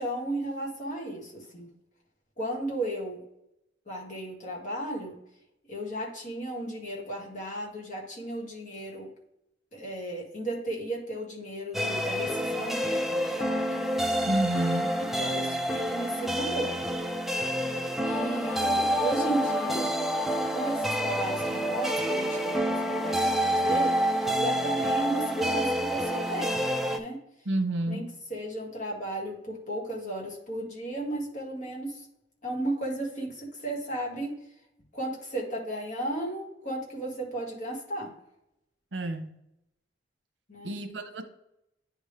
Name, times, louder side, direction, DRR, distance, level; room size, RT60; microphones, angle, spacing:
voice 1, 0.0-1.7 2.4-3.2 3.9-5.2 5.7-9.1 9.7-13.8 15.0-16.8 18.0-19.9 20.5-26.6 26.9-27.2 27.9-32.1 32.4-34.3 34.9-38.1 40.5-40.7, right 1 dB, 45° left, -2 dB, 1.9 m, -34 dB
sound 1, 11.7-27.0, equal, ahead, 0.4 m, -28 dB
voice 2, 14.3-15.0 27.4-28.2 38.9-39.3 40.6-41.2, right 1 dB, 90° right, 8 dB, 0.8 m, -30 dB
9.8 x 3.5 x 3.3 m, 0.83 s
head